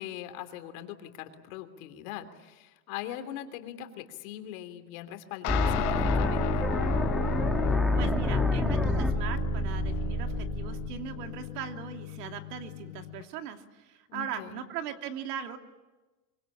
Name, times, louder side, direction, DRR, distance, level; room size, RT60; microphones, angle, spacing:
voice 1, 0.0-6.7 14.1-14.6, left 11 dB, 55° left, 7 dB, 3.1 m, -41 dB
sound 1, 5.4-13.2, left 17 dB, 35° left, 1.0 m, -36 dB
sound 2, 5.5-11.4, left 1 dB, ahead, 1.4 m, -28 dB
voice 2, 8.0-15.6, right 8 dB, 70° right, 5 dB, 2.9 m, -39 dB
25.5 x 24.0 x 8.8 m, 1.2 s
supercardioid pair, 150°, 50 cm